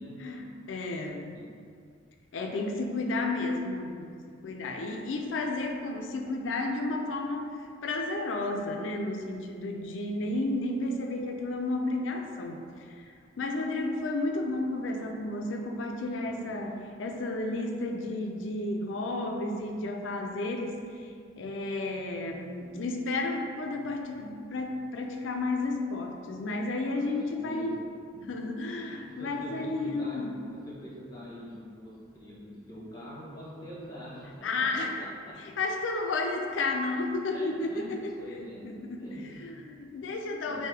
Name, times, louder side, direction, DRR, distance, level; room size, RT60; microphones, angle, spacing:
voice 1, 0.2-1.4 2.3-7.5 7.8-12.6 13.0-13.1 13.4-20.8 21.4-27.8 28.3-30.3 34.4-35.0 35.6-39.1 39.4-40.7, left 2 dB, 75° left, 3 dB, 0.4 m, -32 dB
voice 2, 16.2-16.6 27.0-27.8 28.1-28.3 28.8-30.2 30.5-34.3 34.6-35.3 37.3-37.9 38.2-38.7 39.0-39.5 40.5-40.7, equal, 20° left, -7 dB, 1.0 m, -44 dB
3.3 x 2.6 x 4.5 m, 2.3 s
head